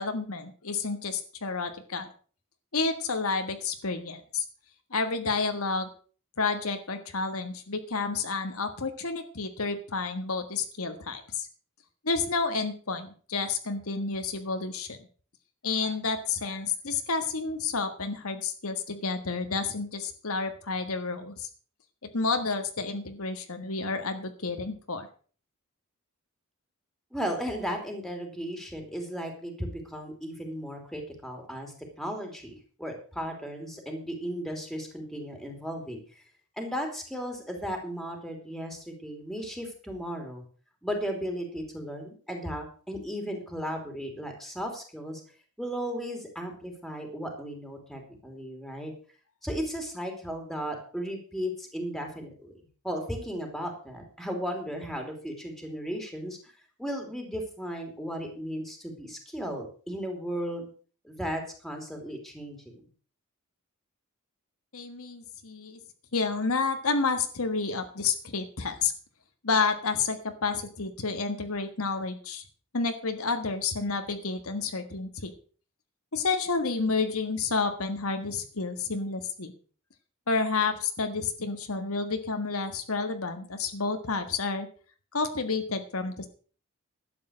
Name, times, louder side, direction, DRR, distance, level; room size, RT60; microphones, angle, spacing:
voice 1, 0.0-2.1 2.7-4.4 4.9-5.9 6.4-11.5 12.0-15.0 15.6-21.5 22.1-25.1 64.7-65.8 66.1-68.9 69.4-72.4 72.7-75.3 76.1-79.5 80.3-84.7 85.1-86.3, left 4 dB, 70° left, 7 dB, 1.6 m, -30 dB
voice 2, 27.1-36.2 36.6-40.4 40.8-45.2 45.6-48.9 49.4-52.6 52.8-56.5 56.8-60.7 61.0-62.8, equal, ahead, 3 dB, 3.1 m, -35 dB
12.0 x 8.5 x 6.4 m, 0.41 s
head